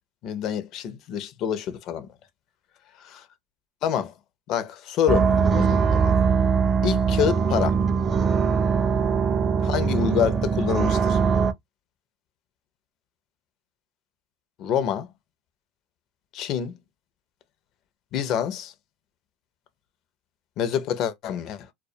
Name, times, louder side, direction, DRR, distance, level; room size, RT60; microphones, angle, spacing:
voice 1, 0.2-2.1 3.0-3.2 3.8-4.1 4.5-6.2 6.8-7.8 9.6-11.2 14.6-15.1 16.3-16.8 18.1-18.7 20.6-21.7, left 9 dB, 50° left, 0.5 m, -27 dB
sound 1, 5.1-11.5, right 6 dB, 30° right, 0.4 m, -21 dB
2.2 x 2.1 x 2.7 m
hypercardioid pair, 95°, 0 cm